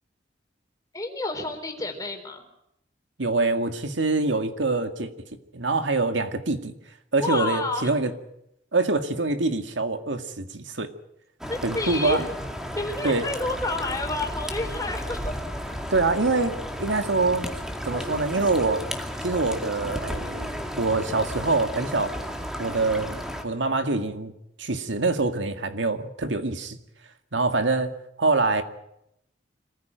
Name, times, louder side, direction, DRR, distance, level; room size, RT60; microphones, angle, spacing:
voice 1, 0.9-2.4 7.2-7.9 11.5-12.3 12.7-15.4, left 2 dB, 20° left, 3 dB, 4.0 m, -30 dB
voice 2, 3.2-5.1 5.5-6.7 7.1-8.1 8.7-10.9 11.6-12.3 13.0-13.3 15.9-17.5 17.9-18.9 19.2-20.5 20.8-22.2 22.6-24.3 24.6-26.8 27.3-27.9 28.2-28.6, right 3 dB, 90° right, 7 dB, 2.0 m, -25 dB
sound 1, 11.4-23.4, equal, 5° right, 2.2 m, -33 dB
26.0 x 15.0 x 9.1 m, 0.82 s
head